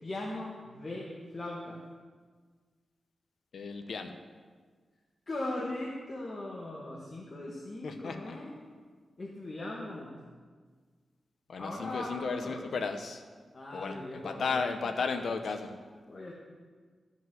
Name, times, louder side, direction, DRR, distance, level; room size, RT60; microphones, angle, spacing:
voice 1, 0.0-1.8 5.3-8.5 9.2-10.2 11.6-12.7 13.5-14.6 16.1-16.3, left 1 dB, 30° left, -4 dB, 1.6 m, -39 dB
voice 2, 3.5-4.1 7.8-8.4 11.5-13.2 13.7-14.0 14.2-15.7, left 4 dB, 65° left, 6 dB, 1.0 m, -34 dB
13.5 x 5.4 x 7.8 m, 1.5 s
wide cardioid pair, 135°, 0 cm